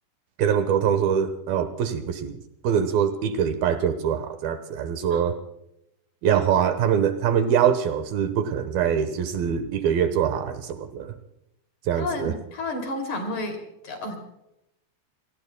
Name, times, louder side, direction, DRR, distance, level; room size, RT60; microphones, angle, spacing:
voice 1, 0.4-2.4 2.6-5.4 6.2-11.1 11.9-12.3, right 8 dB, 70° right, 10 dB, 2.8 m, -23 dB
voice 2, 12.0-14.2, left 2 dB, 50° left, 4 dB, 4.1 m, -31 dB
29.0 x 19.5 x 2.3 m, 0.83 s
omnidirectional pair, 4.7 m